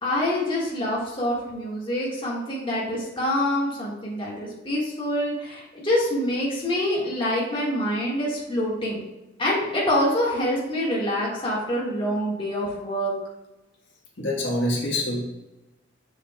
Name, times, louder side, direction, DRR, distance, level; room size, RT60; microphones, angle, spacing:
voice 1, 0.0-9.0 9.4-13.1, left 1 dB, 25° left, -5 dB, 1.8 m, -26 dB
voice 2, 14.2-15.2, left 1 dB, 75° left, -3 dB, 1.6 m, -25 dB
6.9 x 6.7 x 2.4 m, 1.0 s
head